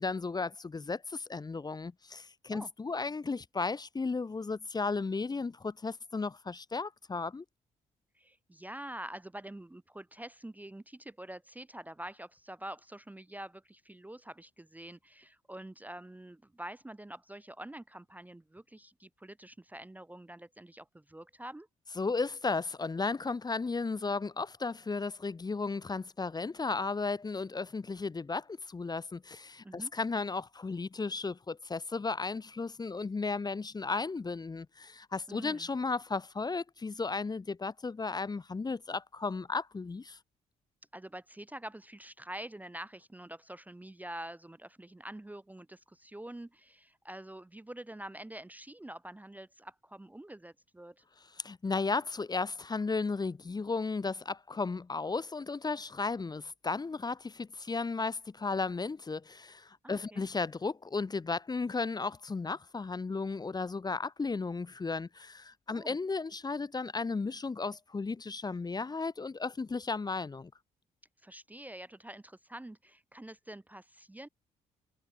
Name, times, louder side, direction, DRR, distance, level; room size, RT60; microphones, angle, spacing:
voice 1, 0.0-7.4 22.0-40.2 51.4-70.5, left 4 dB, 25° left, 0.8 m, -34 dB
voice 2, 8.1-21.7 29.6-29.9 35.3-35.7 40.9-51.0 59.8-60.2 65.7-65.9 71.2-74.3, right 1 dB, 10° right, 0.6 m, -46 dB
supercardioid pair, 55°, 16 cm